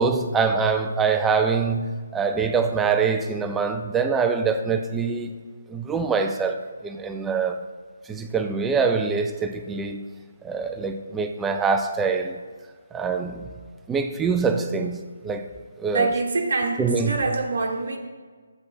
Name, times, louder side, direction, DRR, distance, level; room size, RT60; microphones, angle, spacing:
voice 1, 0.0-5.4 5.7-7.6 8.1-10.1 10.4-12.4 12.9-13.5 13.9-15.5 15.8-16.1 16.8-17.1, right 5 dB, 10° right, 0.4 m, -24 dB
voice 2, 15.9-18.0, right 3 dB, 60° right, 1.0 m, -25 dB
12.0 x 8.0 x 2.6 m
hypercardioid pair, 165°, 0 cm